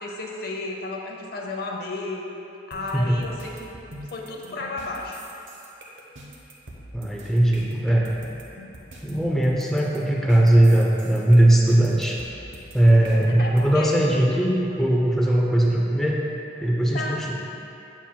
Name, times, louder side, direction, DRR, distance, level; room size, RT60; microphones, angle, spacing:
voice 1, 0.0-2.3 2.7-3.7 4.1-5.2 13.4-14.2 16.9-17.2, left 2 dB, 55° left, 0 dB, 0.6 m, -33 dB
sound 1, 2.7-13.6, equal, 85° right, 0.9 m, -42 dB
voice 2, 6.9-8.1 9.0-12.2 12.7-16.2 16.6-17.3, right 1 dB, ahead, -3 dB, 0.4 m, -19 dB
7.3 x 7.1 x 2.2 m, 2.8 s
head